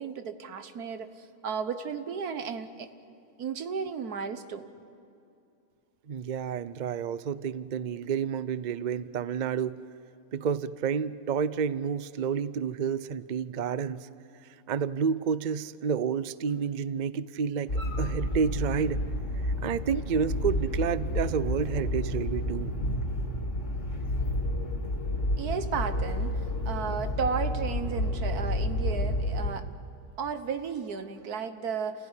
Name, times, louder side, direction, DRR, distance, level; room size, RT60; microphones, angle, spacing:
voice 1, 0.0-2.9 3.4-4.7 25.4-29.7 30.2-32.1, right 6 dB, 85° right, 9 dB, 1.7 m, -34 dB
voice 2, 6.1-9.8 10.3-14.1 14.7-17.7 18.0-19.0 19.6-22.7, right 7 dB, 55° right, 16 dB, 0.5 m, -30 dB
sound 1, 17.7-29.5, left 1 dB, 55° left, 2.7 m, -30 dB
29.5 x 16.5 x 9.8 m, 2.7 s
omnidirectional pair, 1.6 m